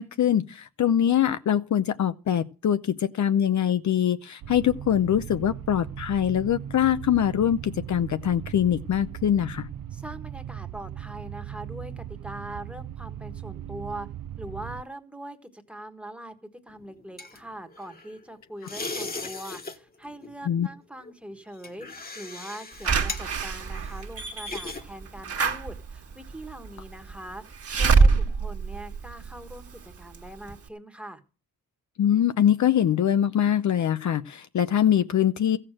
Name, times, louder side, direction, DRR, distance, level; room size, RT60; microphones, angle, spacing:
voice 1, 0.0-9.7 20.5-20.7 32.0-35.6, left 10 dB, 55° left, 0.7 m, -23 dB
sound 1, 4.4-14.8, right 10 dB, 65° right, 0.6 m, -38 dB
voice 2, 9.9-14.1 14.4-31.2, right 1 dB, 5° right, 1.4 m, -42 dB
sound 2, 16.7-18.2 18.6-19.8 20.0-20.3 21.0-24.8 25.1-25.4, left 3 dB, 25° left, 1.4 m, -38 dB
Slam / Alarm, 22.8-29.7 30.1-30.2 30.5-30.6, right 4 dB, 40° right, 1.7 m, -25 dB
15.0 x 6.7 x 7.7 m
wide cardioid pair, 170°, 36 cm